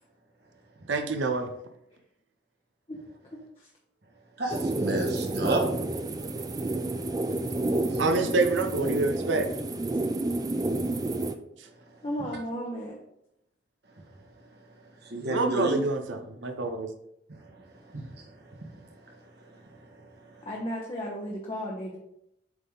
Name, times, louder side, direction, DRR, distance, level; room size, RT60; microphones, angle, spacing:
voice 1, 0.9-1.5 8.0-9.5 15.2-16.9, right 3 dB, 75° right, 6 dB, 0.6 m, -27 dB
voice 2, 2.9-3.7 12.0-13.0 20.4-22.0, equal, 30° left, -2 dB, 0.8 m, -35 dB
voice 3, 4.4-5.6 7.9-8.0 15.0-15.8 17.5-17.6 17.9-18.2 18.5-18.6 19.1-19.2, right 1 dB, 55° right, 0 dB, 1.4 m, -30 dB
sound 1, 4.5-11.4, right 2 dB, 20° right, 0.3 m, -30 dB
7.9 x 3.6 x 3.8 m, 0.80 s
head